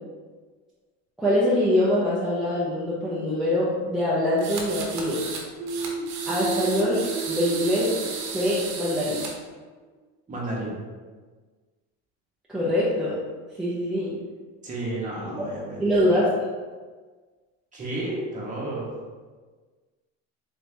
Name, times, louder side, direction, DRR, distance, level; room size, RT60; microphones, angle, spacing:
voice 1, 1.2-5.2 6.3-7.0 7.3-7.9 8.3-9.2 12.5-13.2 13.6-14.1 15.2-15.3 15.8-16.3, left 1 dB, ahead, -9 dB, 0.7 m, -24 dB
sound 1, 4.4-5.4 5.7-9.3, right 4 dB, 55° right, 1.0 m, -34 dB
sound 2, 5.6-9.2, right 5 dB, 85° right, 0.5 m, -33 dB
voice 2, 10.3-10.8 14.6-16.0 17.7-18.9, right 2 dB, 20° right, -5 dB, 1.2 m, -32 dB
4.0 x 3.2 x 3.3 m, 1.4 s
cardioid pair, 140°, 34 cm